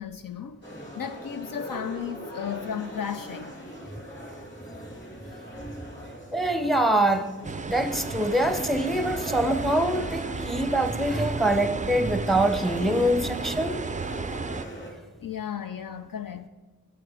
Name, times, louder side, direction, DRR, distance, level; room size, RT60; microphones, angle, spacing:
voice 1, 0.0-3.5 15.2-16.5, left 8 dB, 70° left, 0.5 m, -34 dB
sound 1, 0.6-14.9, equal, 30° left, 2.9 m, -42 dB
voice 2, 6.3-7.3 7.7-13.8, right 1 dB, ahead, 0.7 m, -24 dB
sound 2, 7.4-14.7, right 4 dB, 25° right, 0.3 m, -33 dB
8.9 x 7.8 x 4.9 m
wide cardioid pair, 50°, 36 cm